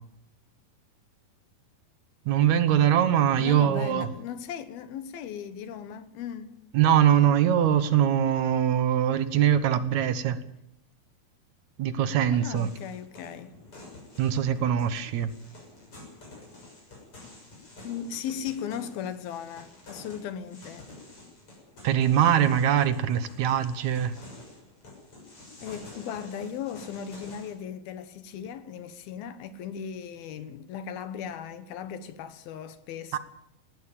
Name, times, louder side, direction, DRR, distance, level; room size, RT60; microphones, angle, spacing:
voice 1, 2.3-4.1 6.7-10.4 11.8-12.7 14.2-15.3 21.8-24.1 33.1-33.2, right 10 dB, 65° right, 2.0 m, -22 dB
voice 2, 3.4-6.6 12.3-13.5 17.8-20.9 25.6-33.2, left 8 dB, 75° left, 3.1 m, -37 dB
sound 1, 12.5-27.5, left 2 dB, 35° left, 7.4 m, -49 dB
19.0 x 16.0 x 8.8 m
omnidirectional pair, 4.4 m